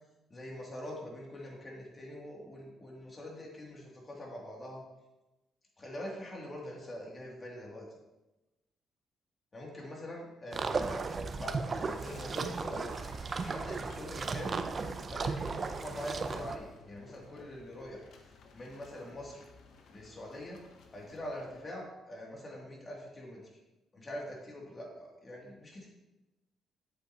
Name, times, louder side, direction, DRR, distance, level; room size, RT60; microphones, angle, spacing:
voice 1, 0.3-4.8 5.8-8.0 9.5-12.9 13.3-19.4 19.9-20.6 20.9-23.6 23.9-25.9, left 1 dB, 30° left, -2 dB, 2.6 m, -44 dB
sound 1, 10.5-16.6, right 4 dB, 40° right, 0.6 m, -35 dB
sound 2, 11.7-21.6, left 4 dB, 70° left, 1.0 m, -57 dB
8.2 x 7.8 x 2.9 m, 1.0 s
cardioid pair, 90°, 0 cm